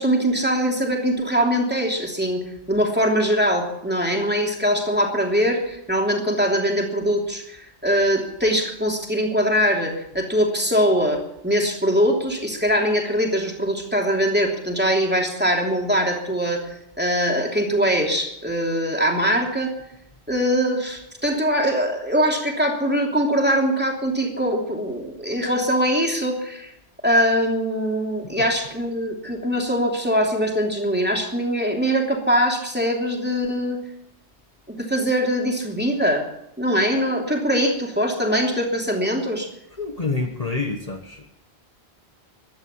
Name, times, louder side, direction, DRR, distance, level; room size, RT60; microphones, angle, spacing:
voice 1, 0.0-16.7 17.0-19.7 20.3-26.7 27.0-33.8 34.7-36.3 36.6-39.5, equal, 10° right, 1 dB, 3.0 m, -22 dB
voice 2, 39.8-41.3, left 3 dB, 35° left, 3 dB, 1.4 m, -28 dB
15.0 x 12.0 x 7.3 m, 0.80 s
omnidirectional pair, 1.1 m